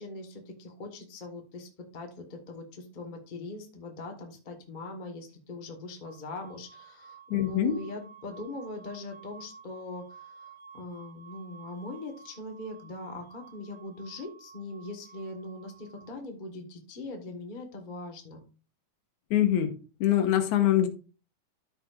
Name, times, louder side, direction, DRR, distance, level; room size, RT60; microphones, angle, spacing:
voice 1, 0.0-18.4, left 2 dB, 40° left, 3 dB, 0.6 m, -41 dB
sound 1, 6.0-16.2, right 6 dB, 80° right, 2.4 m, -52 dB
voice 2, 7.3-7.8 19.3-19.7 20.0-20.9, left 11 dB, 85° left, 6 dB, 2.4 m, -23 dB
13.5 x 4.9 x 2.5 m, 0.35 s
omnidirectional pair, 3.4 m